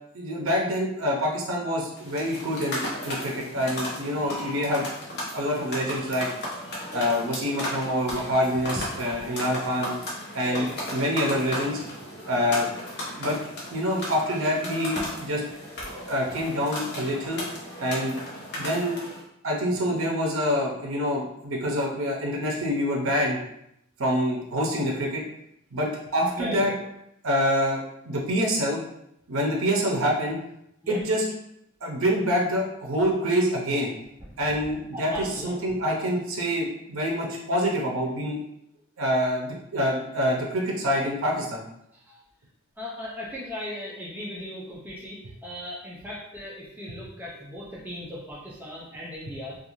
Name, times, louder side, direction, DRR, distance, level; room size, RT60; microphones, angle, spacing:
voice 1, 0.1-4.9 5.3-6.3 6.9-10.0 10.3-10.7 10.9-11.8 12.3-12.7 13.2-13.4 13.7-15.4 16.1-17.4 17.8-18.2 18.6-19.0 19.4-23.4 24.0-25.2 25.7-26.7 27.2-27.8 28.1-28.8 29.3-30.4 30.9-31.2 31.8-33.9 34.4-38.4 39.0-41.7, equal, 80° right, -1 dB, 0.5 m, -26 dB
sound 1, 1.9-19.2, left 1 dB, 55° left, 0.7 m, -36 dB
voice 2, 6.9-7.2 8.1-8.3 9.0-9.1 10.4-10.8 12.5-12.6 15.9-16.0 26.3-26.8 30.8-31.0 34.3-34.4 34.9-35.8 41.9-42.2 42.8-49.6, left 1 dB, 10° right, -6 dB, 0.4 m, -38 dB
2.4 x 2.3 x 2.9 m, 0.78 s
head